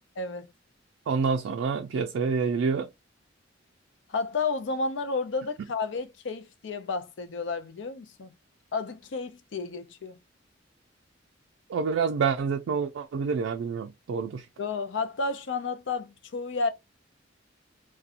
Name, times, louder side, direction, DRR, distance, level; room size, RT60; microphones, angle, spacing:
voice 1, 0.2-0.5 4.1-8.3 8.7-10.2 14.6-16.7, left 4 dB, 65° left, 0.4 m, -31 dB
voice 2, 1.1-2.9 11.7-14.4, right 5 dB, 75° right, 0.3 m, -27 dB
2.7 x 2.2 x 2.4 m
head